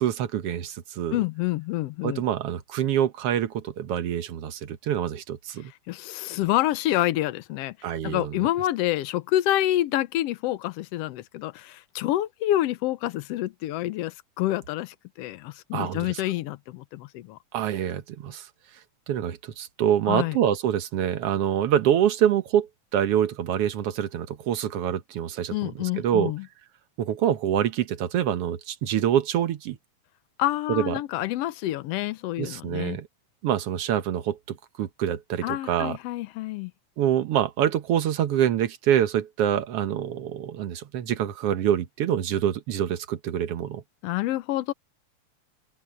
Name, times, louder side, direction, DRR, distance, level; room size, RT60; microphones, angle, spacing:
voice 1, 0.0-1.2 2.0-5.7 7.8-8.5 15.7-16.2 17.5-18.5 19.1-26.3 27.0-29.8 30.7-31.0 32.4-33.1 33.4-36.0 37.0-43.8, right 10 dB, 65° right, 1.8 m, -26 dB
voice 2, 1.1-2.2 5.9-7.8 8.0-17.4 20.1-20.4 25.5-26.4 30.4-33.0 35.4-36.7 44.0-44.7, left 14 dB, 70° left, 1.6 m, -27 dB
open air
omnidirectional pair, 3.3 m